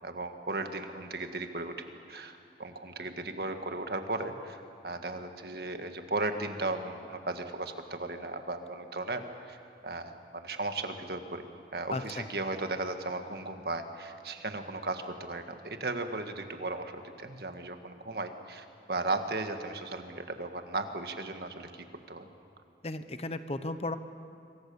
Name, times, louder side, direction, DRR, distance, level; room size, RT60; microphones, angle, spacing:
voice 1, 0.0-9.6 9.8-11.4 11.7-22.3, right 2 dB, 60° right, 6 dB, 1.7 m, -36 dB
voice 2, 11.9-12.2 22.8-24.0, left 2 dB, 35° left, 10 dB, 0.9 m, -35 dB
27.0 x 24.0 x 7.1 m, 2.6 s
head